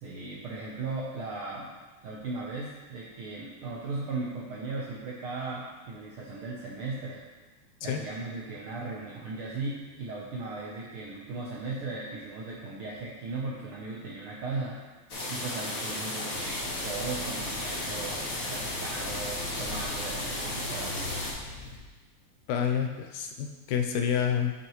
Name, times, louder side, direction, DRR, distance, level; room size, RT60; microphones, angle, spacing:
voice 1, 0.0-1.7 2.0-7.2 7.8-14.9 15.3-21.3, right 3 dB, 70° right, -5 dB, 1.3 m, -37 dB
sound 1, 15.1-21.3, left 1 dB, 50° left, 1.1 m, -34 dB
sound 2, 16.3-21.8, left 2 dB, 65° left, 1.7 m, -43 dB
voice 2, 22.5-24.5, left 8 dB, 85° left, 4 dB, 2.0 m, -28 dB
8.8 x 5.8 x 3.1 m, 1.2 s
omnidirectional pair, 3.4 m